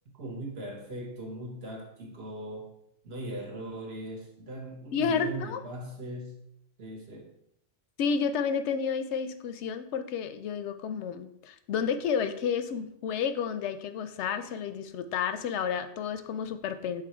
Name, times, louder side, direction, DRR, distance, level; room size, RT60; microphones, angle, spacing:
voice 1, 0.1-2.7 3.0-6.4 6.8-7.3, right 1 dB, 65° right, 1 dB, 1.5 m, -39 dB
voice 2, 4.9-5.6 8.0-17.0, left 6 dB, 85° left, 10 dB, 0.9 m, -31 dB
6.0 x 3.9 x 4.4 m, 0.76 s
omnidirectional pair, 1.1 m